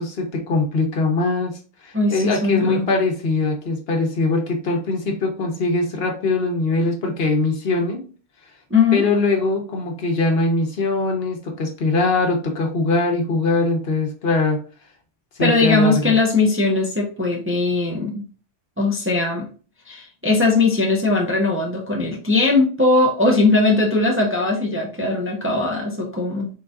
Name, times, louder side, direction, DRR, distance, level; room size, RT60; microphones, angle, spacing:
voice 1, 0.0-8.0 8.9-14.6 15.4-16.2, left 3 dB, 65° left, 2 dB, 1.1 m, -22 dB
voice 2, 1.9-2.8 8.7-9.1 15.4-18.3 18.8-19.5 19.9-26.5, left 3 dB, 15° right, 0 dB, 0.5 m, -19 dB
3.8 x 3.7 x 2.4 m, 0.38 s
omnidirectional pair, 1.1 m